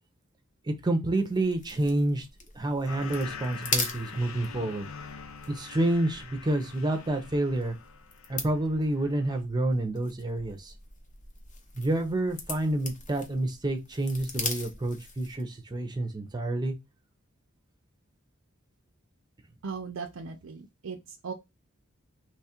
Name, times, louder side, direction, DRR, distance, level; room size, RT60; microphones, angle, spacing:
voice 1, 0.7-2.3 2.5-4.9 5.5-7.8 8.3-10.7 11.8-16.7, right 1 dB, 20° right, 0.6 m, -28 dB
sound 1, 1.1-15.5, left 4 dB, 40° left, 0.7 m, -40 dB
sound 2, 2.9-8.6 9.0-9.4, left 6 dB, 85° left, 0.5 m, -44 dB
voice 2, 19.6-21.0 21.2-21.3, right 5 dB, 80° right, 0.5 m, -37 dB
3.1 x 2.4 x 4.2 m
head